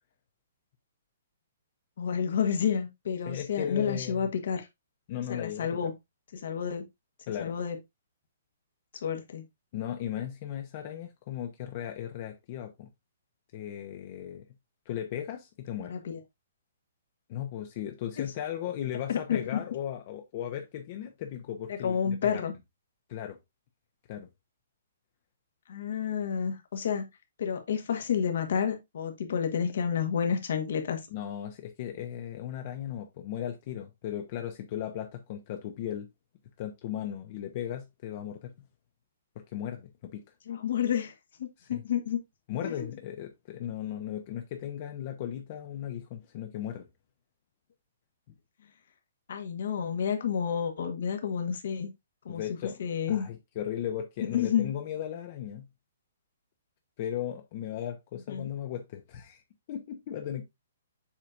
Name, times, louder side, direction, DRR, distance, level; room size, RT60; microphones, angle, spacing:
voice 1, 2.0-4.7 5.3-5.9 6.3-6.9 7.4-7.8 8.9-9.4 15.9-16.2 18.2-18.3 19.1-19.6 21.7-22.5 25.7-27.1 27.4-31.0 40.5-41.1 41.4-42.2 42.6-42.9 49.3-51.9 52.2-52.4 52.8-53.3 54.3-54.7 58.3-58.5, left 7 dB, 65° left, 1.5 m, -30 dB
voice 2, 3.3-4.3 5.1-5.7 7.3-7.5 9.7-12.9 13.5-14.5 14.9-16.0 17.3-22.4 23.1-23.4 24.1-24.3 31.1-36.1 36.6-38.5 39.5-40.2 41.6-41.8 42.5-46.9 52.3-52.8 53.1-55.7 57.0-59.4 59.7-60.4, left 10 dB, 40° left, 0.9 m, -36 dB
7.4 x 4.9 x 2.6 m
hypercardioid pair, 160°, 0 cm